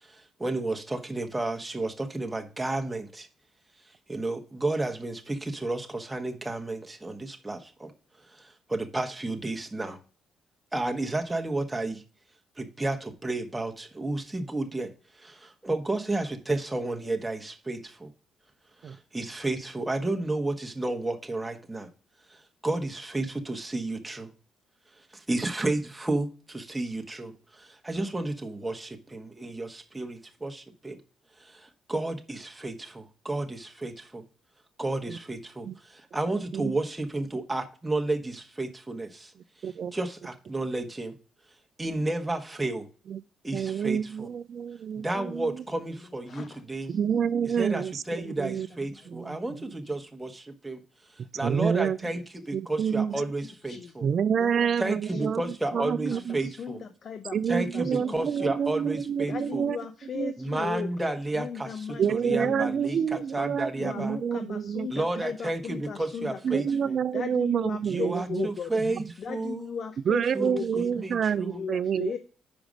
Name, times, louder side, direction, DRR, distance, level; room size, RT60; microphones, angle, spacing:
voice 1, 0.0-3.3 4.1-7.9 8.3-10.0 10.7-12.0 12.6-14.9 15.2-18.1 18.8-21.9 22.3-24.3 25.1-31.0 31.4-34.2 34.8-39.3 39.9-41.2 41.8-42.9 43.4-44.3 44.9-47.0 47.4-50.8 51.3-54.1 54.8-56.8 57.5-59.7 60.4-64.2 64.9-67.0 67.8-69.8 70.3-71.6, right 2 dB, 10° right, 1.0 m, -32 dB
voice 2, 39.6-39.9 43.1-43.2 43.5-45.5 46.9-47.9 48.4-48.7 49.1-49.4 51.4-52.0 52.5-53.1 54.0-55.4 55.7-56.4 57.3-59.8 60.1-60.6 62.0-64.9 66.4-68.5 70.0-72.2, right 7 dB, 55° right, 0.4 m, -28 dB
voice 3, 54.4-54.7 56.1-56.2 56.6-57.7 58.0-58.1 58.4-58.5 59.3-62.7 63.1-63.2 63.8-66.6 67.1-68.7 69.2-70.9 71.5-72.2, left 6 dB, 50° left, 0.6 m, -36 dB
5.2 x 4.9 x 6.2 m
cardioid pair, 90°, 0 cm